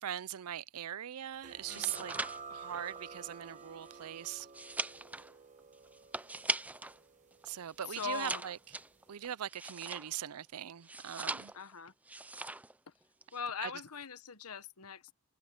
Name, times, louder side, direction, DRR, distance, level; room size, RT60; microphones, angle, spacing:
voice 1, 0.0-2.1 2.5-4.5 7.4-8.6 9.1-11.5 13.6-13.7, right 10 dB, 85° right, 0.5 m, -41 dB
sound 1, 1.4-8.7, right 4 dB, 35° right, 1.3 m, -51 dB
sound 2, 1.5-7.0 7.3-10.3 10.8-11.7 12.0-12.7 13.0-13.4, right 2 dB, 5° right, 0.3 m, -41 dB
voice 2, 1.7-2.1 7.9-8.4 11.5-11.9 13.3-15.1, left 5 dB, 85° left, 1.3 m, -41 dB
head